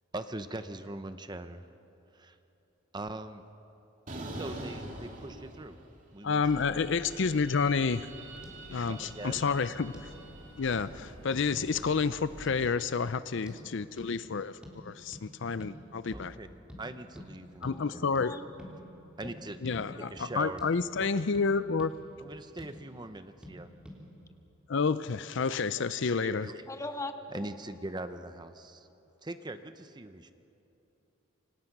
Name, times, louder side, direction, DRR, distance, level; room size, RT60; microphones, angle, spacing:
voice 1, 0.1-1.7 2.1-2.4 2.9-3.4 4.3-5.8 6.1-6.6 8.7-9.4 16.1-16.5 16.8-18.1 19.2-19.6 20.1-20.6 21.0-21.1 22.2-23.7 25.7-26.6 27.3-28.9 29.2-30.3, right 2 dB, 20° right, 10 dB, 0.7 m, -41 dB
sound 1, 4.1-6.0 6.3-10.7, right 2 dB, 40° right, 2.8 m, -45 dB
voice 2, 6.2-8.1 8.7-10.1 10.6-16.4 17.6-18.4 19.6-21.9 24.7-26.5, left 5 dB, 60° left, 14 dB, 0.5 m, -30 dB
sound 2, 6.4-12.7, right 1 dB, 75° right, 4.4 m, -50 dB
sound 3, 8.4-8.6 8.8-9.0 9.4-9.5 9.9-10.1 10.7-10.9 11.5-12.0 12.4-12.6 13.5-13.6 14.0-14.1 14.6-14.8 15.1-15.3 15.6-15.8 16.1-16.3 16.7-16.8 17.1-17.3 17.6-17.8 18.1-18.3 18.6-18.7 19.2-19.4 19.7-19.9 20.2-20.3 20.6-20.7 21.0-21.5 21.8-21.9 22.3-22.8 23.4-23.6 23.8-24.0, equal, 5° right, 3.4 m, -47 dB
voice 3, 17.7-18.5 19.7-20.1 26.7-27.5, left 2 dB, 15° left, 7 dB, 1.2 m, -41 dB
28.5 x 25.5 x 6.0 m, 2.9 s
head